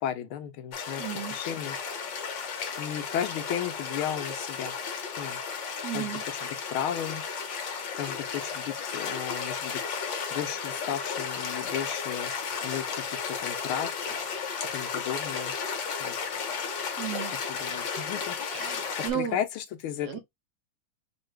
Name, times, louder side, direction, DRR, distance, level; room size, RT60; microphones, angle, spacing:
voice 1, 0.0-1.0 1.3-1.8 2.8-4.7 5.2-5.4 5.9-7.2 7.9-9.8 10.3-12.3 12.6-13.9 14.7-15.5 16.0-16.1 17.3-20.2, left 9 dB, 85° left, 1.6 m, -34 dB
sound 1, 0.7-19.1, left 6 dB, 65° left, 1.7 m, -34 dB
voice 2, 1.0-1.3 5.8-6.2 17.0-17.3 18.5-19.4 20.0-20.2, right 9 dB, 65° right, 1.1 m, -33 dB
5.7 x 2.3 x 3.3 m
omnidirectional pair, 2.3 m